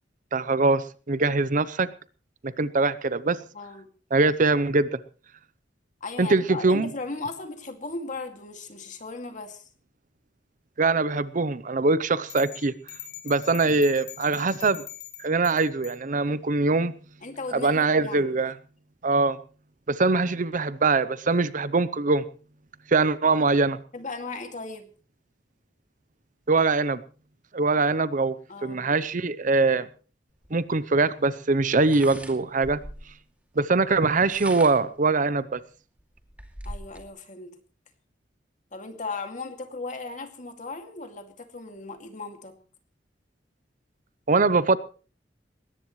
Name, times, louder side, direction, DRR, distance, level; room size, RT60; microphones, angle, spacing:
voice 1, 0.3-1.9 2.6-3.4 4.1-5.0 6.2-6.9 10.8-12.7 13.2-14.8 15.2-16.9 17.5-18.5 19.0-19.4 19.9-22.2 22.9-23.8 26.5-27.0 27.5-28.3 28.6-29.9 30.5-32.8 33.6-35.6 44.3-44.8, right 3 dB, 45° right, 15 dB, 0.7 m, -22 dB
voice 2, 3.5-3.9 6.0-9.7 17.2-18.4 23.9-24.9 28.5-29.0 36.6-37.5 38.7-42.6, left 3 dB, 45° left, 5 dB, 2.4 m, -37 dB
sound 1, 12.3-16.0, left 12 dB, 70° left, 4.3 m, -42 dB
sound 2, 30.4-30.5 31.8-33.1 34.1-35.0 35.6-35.7 36.0-37.1, right 1 dB, 10° right, 2.5 m, -41 dB
20.5 x 18.0 x 3.2 m, 0.38 s
head